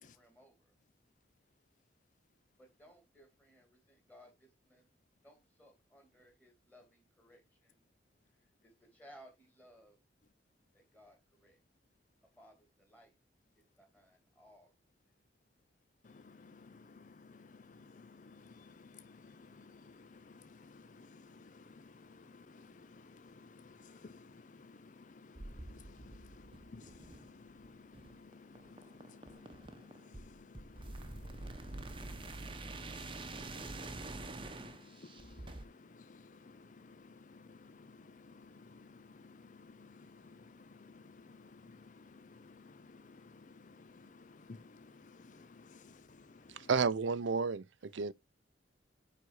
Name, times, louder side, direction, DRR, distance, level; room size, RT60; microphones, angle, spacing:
voice 1, 0.1-0.7 2.6-4.9 5.2-7.8 8.4-10.0 10.7-11.6 12.4-13.1 13.5-14.7, equal, 10° left, 2.7 m, -61 dB
voice 2, 16.0-46.7, left 4 dB, 40° left, 0.5 m, -56 dB
sound 1, 25.3-35.6, right 2 dB, 25° right, 0.9 m, -47 dB
voice 3, 46.5-48.1, right 5 dB, 80° right, 0.5 m, -32 dB
9.5 x 4.1 x 4.8 m
head